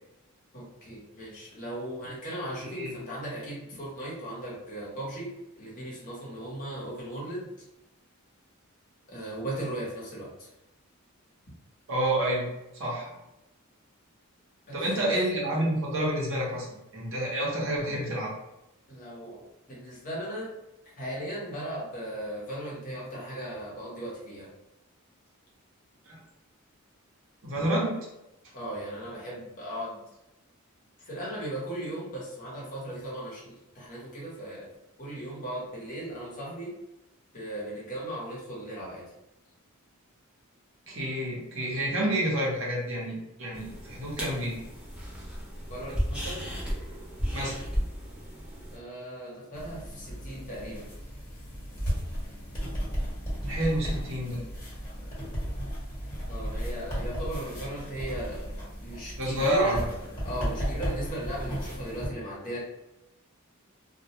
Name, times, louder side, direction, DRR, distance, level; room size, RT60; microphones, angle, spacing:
voice 1, 0.5-5.3 5.6-7.5 9.1-10.5 14.7-15.1 18.9-19.4 19.7-20.5 21.0-24.5 28.5-30.0 31.0-34.7 35.0-36.7 37.3-39.0 45.7-46.5 48.7-50.9 56.3-58.5 58.8-59.9 60.2-62.6, right 1 dB, 40° left, -5 dB, 0.9 m, -37 dB
voice 2, 2.6-3.0 11.9-12.5 12.8-13.2 14.7-16.7 16.9-18.3 26.1-26.2 27.4-28.0 40.9-44.6 47.3-47.6 53.5-54.4 59.2-59.9, right 1 dB, 65° right, -4 dB, 0.9 m, -29 dB
sound 1, 43.5-48.8, equal, 5° right, 0.6 m, -34 dB
sound 2, 49.5-62.1, equal, 20° left, 1.3 m, -35 dB
2.3 x 2.1 x 2.9 m, 0.91 s
head